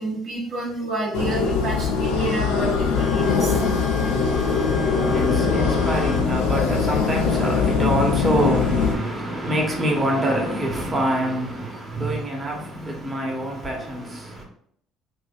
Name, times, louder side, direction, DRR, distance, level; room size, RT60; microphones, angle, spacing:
voice 1, 0.0-3.5 9.7-9.8 10.8-11.0 11.6-13.0, right 2 dB, 55° right, 1.0 m, -30 dB
sound 1, 1.1-9.0, left 5 dB, 80° left, 0.6 m, -22 dB
sound 2, 2.9-6.2 6.6-6.7 7.5-7.7 9.9-10.0 10.6-10.7, left 2 dB, 5° left, 0.7 m, -35 dB
voice 2, 4.3-14.4, right 1 dB, 30° right, 1.1 m, -26 dB
3.5 x 2.2 x 3.6 m
hypercardioid pair, 55°, 0 cm